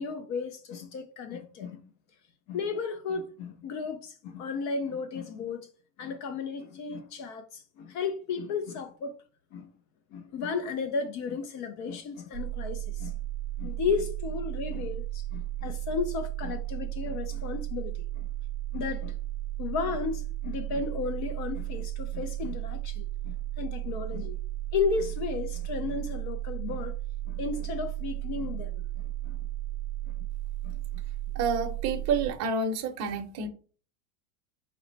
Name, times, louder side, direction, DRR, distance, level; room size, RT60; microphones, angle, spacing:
voice 1, 0.0-1.8 2.5-5.7 6.0-9.2 9.5-9.7 10.1-13.2 13.6-18.3 18.7-19.1 19.6-24.4 24.7-26.9 27.3-29.4 30.6-30.8, left 5 dB, 40° left, 0.5 m, -34 dB
sound 1, 12.3-32.3, right 14 dB, 70° right, 0.7 m, -34 dB
voice 2, 31.3-33.5, right 4 dB, 35° right, 0.7 m, -29 dB
4.2 x 2.1 x 3.8 m
supercardioid pair, 135°, 44 cm